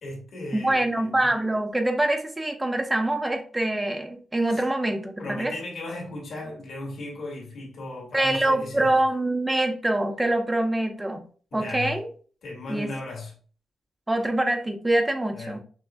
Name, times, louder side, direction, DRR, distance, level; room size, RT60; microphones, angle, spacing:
voice 1, 0.0-1.3 4.5-4.6 5.2-9.0 11.5-12.0 12.4-13.3 15.3-15.6, left 2 dB, 65° left, 2.1 m, -36 dB
voice 2, 0.5-5.5 8.1-11.2 11.5-12.1 12.7-12.9 14.1-15.6, right 1 dB, 10° right, 0.6 m, -25 dB
6.0 x 3.0 x 2.3 m
wide cardioid pair, 140°, 0 cm